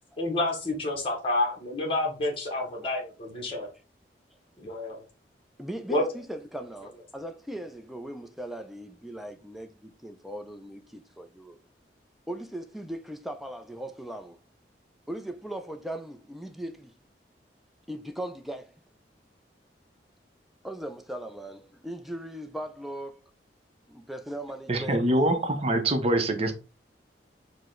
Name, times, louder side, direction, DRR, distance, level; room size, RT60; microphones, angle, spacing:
voice 1, 0.2-3.7 4.6-5.0 5.9-6.0, left 2 dB, 30° left, 0.8 m, -29 dB
voice 2, 5.6-11.6 12.3-14.4 15.1-16.9 17.9-18.7 20.6-23.2 23.9-25.1, right 1 dB, ahead, 0.4 m, -38 dB
voice 3, 24.7-26.5, right 1 dB, 35° right, 0.7 m, -24 dB
4.7 x 2.1 x 3.7 m
head